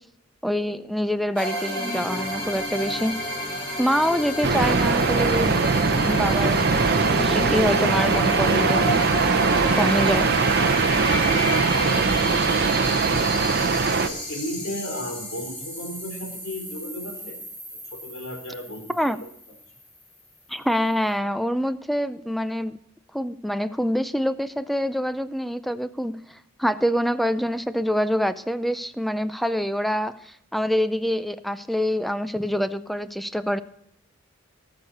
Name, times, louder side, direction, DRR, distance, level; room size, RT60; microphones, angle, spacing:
voice 1, 0.4-3.1 3.8-5.6 5.9-6.7 7.1-9.0 9.7-10.3 18.9-19.2 20.5-22.7 23.1-33.6, equal, ahead, 12 dB, 0.5 m, -25 dB
sound 1, 1.4-19.8, equal, 25° left, 3.6 m, -31 dB
sound 2, 4.4-14.1, right 4 dB, 50° right, 0.7 m, -21 dB
voice 2, 11.2-13.4 14.0-17.4 17.9-19.2, equal, 80° left, 2 dB, 3.8 m, -35 dB
18.5 x 6.6 x 4.1 m, 0.75 s
head